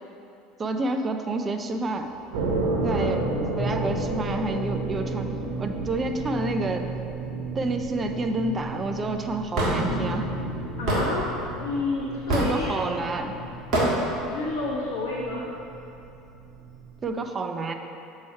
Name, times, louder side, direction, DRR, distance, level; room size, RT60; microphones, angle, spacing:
voice 1, 0.6-2.1 2.8-3.3 3.6-5.3 5.6-6.9 7.5-10.3 12.3-13.4 17.0-17.7, right 2 dB, 30° right, 6 dB, 0.4 m, -29 dB
sound 1, 1.6-14.2, left 1 dB, 20° left, 1.4 m, -39 dB
sound 2, 2.3-17.1, right 2 dB, 70° right, 0.6 m, -33 dB
Hammer / Wood, 9.6-9.8 10.9-11.0 12.3-12.6 13.7-13.9, right 1 dB, 50° right, 1.5 m, -22 dB
voice 2, 10.8-12.7 14.3-15.5, left 3 dB, 65° left, -4 dB, 0.6 m, -30 dB
6.8 x 3.2 x 4.6 m, 2.8 s
figure-of-eight pair, 70°, 0 cm